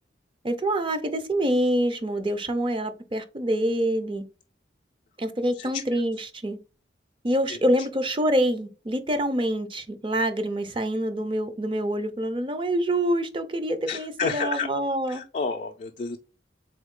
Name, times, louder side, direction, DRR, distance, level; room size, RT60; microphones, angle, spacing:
voice 1, 0.4-4.2 5.2-6.6 7.2-15.2, right 1 dB, 25° right, 0.5 m, -26 dB
voice 2, 13.9-14.7 15.1-16.2, left 5 dB, 40° left, 0.3 m, -29 dB
3.9 x 3.5 x 3.6 m
head